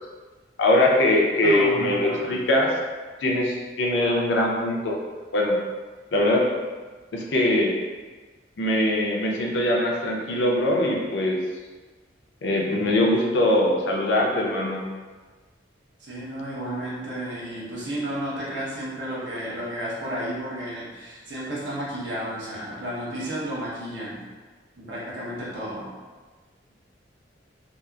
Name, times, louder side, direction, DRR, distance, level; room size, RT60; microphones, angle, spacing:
voice 1, 0.6-2.7 3.2-5.0 5.3-5.6 6.1-6.5 7.1-7.7 8.6-11.4 12.4-14.8, left 1 dB, 70° left, -1 dB, 0.5 m, -22 dB
voice 2, 1.3-2.3 12.7-13.0 16.0-24.2 24.7-25.9, right 1 dB, 75° right, -6 dB, 0.8 m, -32 dB
2.8 x 2.4 x 2.3 m, 1.4 s
head